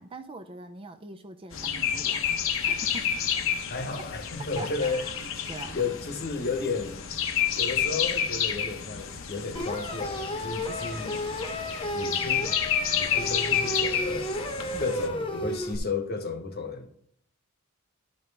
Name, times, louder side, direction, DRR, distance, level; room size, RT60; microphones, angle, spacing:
voice 1, 0.0-2.3 2.6-3.1 4.4-5.1 5.5-5.8 14.7-14.9, right 2 dB, 25° right, 0.5 m, -42 dB
sound 1, 1.5-15.1, left 8 dB, 65° left, 0.8 m, -30 dB
voice 2, 3.7-5.1 5.7-7.0 7.6-11.2 11.9-12.6 13.0-14.4 14.8-16.9, left 4 dB, 50° left, 1.1 m, -33 dB
sound 2, 9.5-15.8, left 1 dB, 25° left, 1.0 m, -33 dB
11.5 x 5.4 x 3.3 m
head